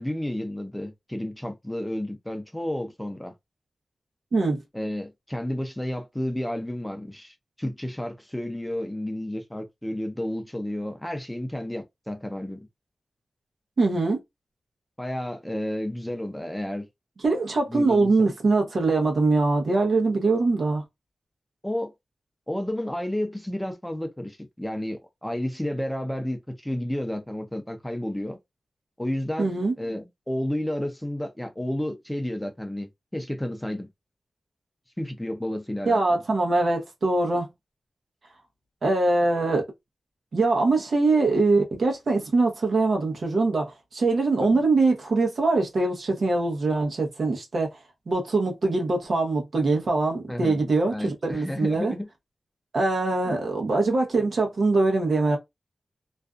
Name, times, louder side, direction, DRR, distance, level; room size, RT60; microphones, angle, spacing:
voice 1, 0.0-3.3 4.7-12.6 15.0-16.9 17.7-18.3 21.6-21.9 22.5-28.4 29.0-29.5 29.8-33.9 35.0-36.2 44.4-44.6 50.3-50.6 50.9-52.1 53.3-53.4, left 1 dB, 10° left, 0.5 m, -31 dB
voice 2, 4.3-4.6 13.8-14.2 17.2-20.8 29.4-29.7 35.9-37.5 38.8-39.6 40.3-47.7 48.1-51.9 52.7-55.4, right 3 dB, 70° right, 0.8 m, -23 dB
2.5 x 2.3 x 2.4 m
wide cardioid pair, 90°, 0 cm